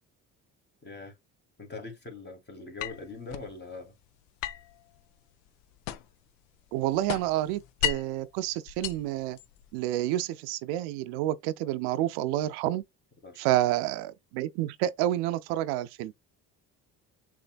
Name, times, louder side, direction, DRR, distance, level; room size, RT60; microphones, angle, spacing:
voice 1, 0.8-1.2 1.6-3.9 13.2-13.5, left 3 dB, 25° left, 2.1 m, -42 dB
sound 1, 2.8-3.5 4.4-6.3 6.6-8.2 8.7-9.8, left 12 dB, 90° left, 0.5 m, -35 dB
voice 2, 6.7-9.4 9.7-12.8 13.4-16.1, right 14 dB, 85° right, 0.5 m, -29 dB
6.8 x 3.1 x 2.3 m
supercardioid pair, 65°, 38 cm